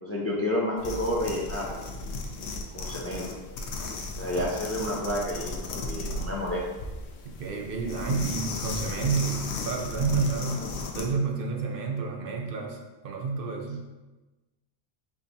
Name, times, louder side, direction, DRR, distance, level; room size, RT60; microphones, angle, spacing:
voice 1, 0.0-1.8 2.7-3.4 4.2-5.5 5.8-6.6, left 1 dB, 20° left, -3 dB, 0.4 m, -30 dB
sound 1, 0.8-11.1, left 2 dB, 90° left, 0.9 m, -35 dB
voice 2, 7.4-13.9, right 4 dB, 65° right, 1 dB, 0.7 m, -30 dB
4.6 x 3.3 x 2.7 m, 1.1 s
omnidirectional pair, 1.1 m